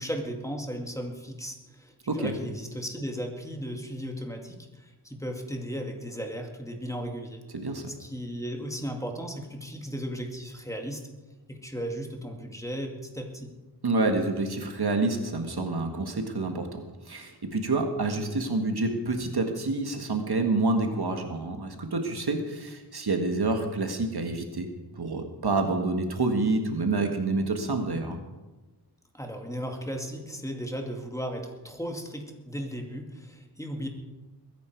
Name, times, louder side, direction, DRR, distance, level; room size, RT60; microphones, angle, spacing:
voice 1, 0.0-7.4 8.0-11.0 11.5-13.5 29.1-33.9, equal, 10° left, 2 dB, 2.2 m, -36 dB
voice 2, 7.5-7.9 13.8-24.7 25.0-28.2, right 3 dB, 65° right, 5 dB, 1.8 m, -28 dB
21.5 x 10.5 x 4.7 m, 1.1 s
wide cardioid pair, 65°, 41 cm